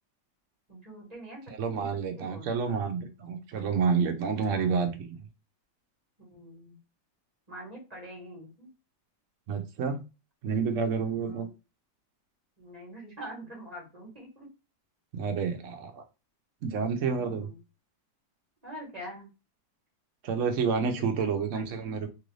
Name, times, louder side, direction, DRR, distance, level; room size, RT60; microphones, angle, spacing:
voice 1, 0.7-2.7 4.3-4.7 6.3-6.8 7.5-8.7 11.2-11.5 12.6-14.5 17.1-17.6 18.6-19.3 20.8-21.7, right 1 dB, 25° right, -2 dB, 1.2 m, -45 dB
voice 2, 1.6-5.2 9.5-10.1 10.4-11.5 15.1-16.0 16.6-17.5 20.2-22.1, right 5 dB, 65° right, 5 dB, 0.7 m, -29 dB
3.0 x 2.5 x 3.1 m, 0.29 s
omnidirectional pair, 2.0 m